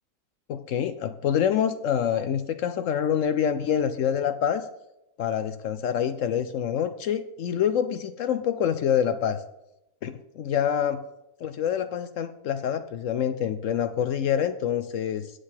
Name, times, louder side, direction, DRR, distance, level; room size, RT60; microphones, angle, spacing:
voice 1, 0.5-4.7 5.2-9.4 10.0-11.0 11.4-15.3, left 8 dB, 70° left, 11 dB, 0.8 m, -26 dB
9.5 x 6.5 x 5.8 m, 0.88 s
omnidirectional pair, 1.6 m